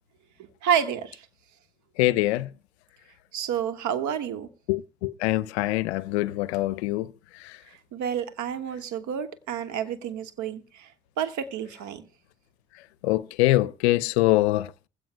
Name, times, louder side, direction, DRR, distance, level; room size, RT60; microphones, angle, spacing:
voice 1, 0.6-1.3 3.3-4.5 7.9-10.9 11.2-12.1, right 8 dB, 65° right, 1.5 m, -29 dB
voice 2, 2.0-2.5 4.7-7.1 13.0-14.9, left 17 dB, 80° left, 0.5 m, -24 dB
20.5 x 16.0 x 2.2 m
hypercardioid pair, 45°, 32 cm